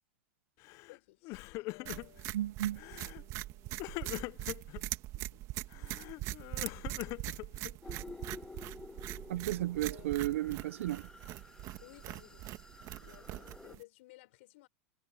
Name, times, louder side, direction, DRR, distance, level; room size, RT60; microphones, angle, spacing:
Crying sobbing, 0.6-1.0 1.2-2.3 2.8-3.2 3.8-4.8 5.7-8.0, left 21 dB, 50° left, 0.6 m, -42 dB
voice 1, 0.9-2.3 2.7-4.1 5.1-6.6 9.8-10.1 11.8-12.5 13.0-14.7, left 20 dB, 70° left, 5.1 m, -59 dB
sound 1, 1.9-13.8, right 17 dB, 45° right, 1.8 m, -42 dB
voice 2, 2.3-2.8 9.3-11.1, right 14 dB, 85° right, 0.4 m, -33 dB
sound 2, 7.8-13.8, left 3 dB, 10° left, 1.7 m, -51 dB
supercardioid pair, 125°, 7 cm